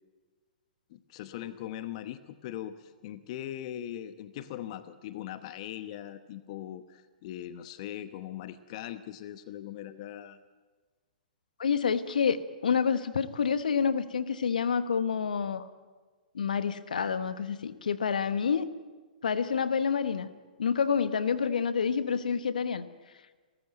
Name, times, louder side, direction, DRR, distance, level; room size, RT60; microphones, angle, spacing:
voice 1, 0.9-10.4, left 12 dB, 45° left, 12 dB, 1.0 m, -40 dB
voice 2, 11.6-15.7 16.3-18.7 19.2-20.3 20.6-22.8, left 6 dB, 70° left, 13 dB, 1.2 m, -28 dB
29.0 x 14.0 x 9.1 m, 1.4 s
figure-of-eight pair, 115°, 5 cm